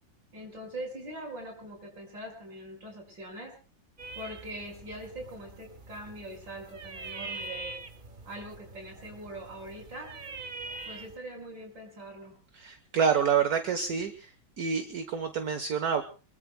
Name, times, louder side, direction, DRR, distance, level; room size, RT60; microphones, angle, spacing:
voice 1, 0.3-3.5 4.1-7.7 8.2-10.1 10.9-12.4, right 1 dB, 75° right, 2 dB, 6.4 m, -42 dB
sound 1, 4.0-11.2, right 3 dB, 30° right, 1.2 m, -43 dB
voice 2, 12.5-14.3 14.6-16.0, right 7 dB, 55° right, 8 dB, 1.6 m, -28 dB
27.5 x 23.0 x 2.2 m, 0.35 s
omnidirectional pair, 2.0 m